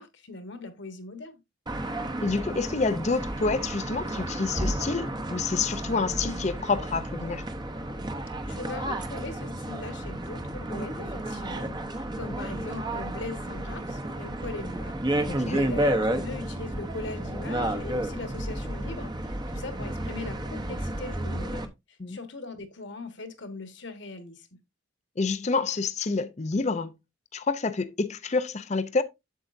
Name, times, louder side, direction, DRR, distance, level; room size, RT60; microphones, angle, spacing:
voice 1, 0.0-1.4 8.5-24.5, left 3 dB, 60° left, 1.4 m, -40 dB
sound 1, 1.7-21.7, right 1 dB, 20° right, 0.8 m, -32 dB
voice 2, 2.2-7.4 15.3-15.6 22.0-22.2 25.2-26.9 27.3-29.0, left 4 dB, 35° left, 0.5 m, -28 dB
8.2 x 7.6 x 2.6 m
head